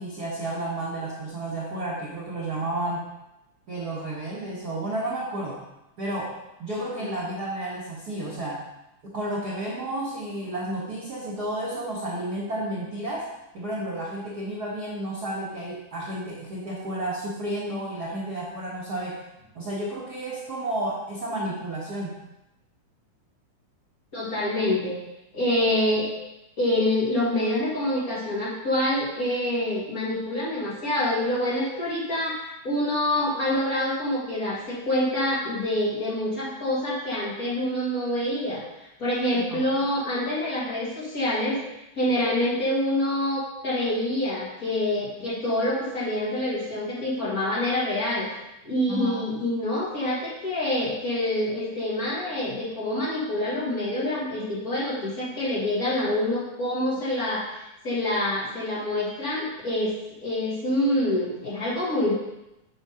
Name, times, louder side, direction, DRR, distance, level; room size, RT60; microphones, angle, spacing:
voice 1, 0.0-3.1 3.7-5.6 6.0-8.6 9.0-13.3 13.5-19.2 19.5-22.2 39.5-39.6 48.9-49.2, right 1 dB, 75° right, -6 dB, 0.9 m, -31 dB
voice 2, 24.1-25.0 25.3-26.1 26.6-41.6 42.0-48.3 48.6-59.9 60.2-62.1, left 1 dB, 40° left, -7 dB, 1.4 m, -26 dB
7.9 x 3.5 x 5.6 m, 0.91 s
omnidirectional pair, 3.6 m